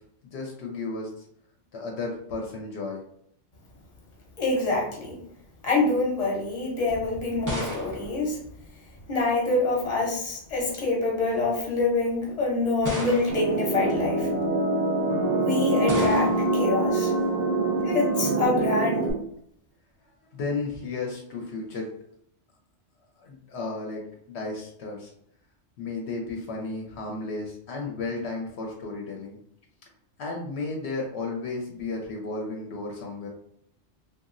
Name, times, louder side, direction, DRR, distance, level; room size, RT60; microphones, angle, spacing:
voice 1, 0.2-1.2 1.7-3.0 20.3-21.9 23.2-25.1 25.8-29.4 30.2-33.3, left 3 dB, 75° left, 0 dB, 0.8 m, -33 dB
voice 2, 4.4-5.2 5.6-8.4 9.1-14.3 15.4-17.1 17.8-19.1, left 3 dB, 35° left, -2 dB, 0.8 m, -26 dB
sound 1, 6.9-9.2 10.2-10.7 11.5-11.6 12.8-13.7 15.9-16.6, equal, 25° right, 0.5 m, -34 dB
sound 2, 13.3-19.1, right 2 dB, 60° right, 0.7 m, -25 dB
2.9 x 2.4 x 2.5 m, 0.69 s
omnidirectional pair, 1.2 m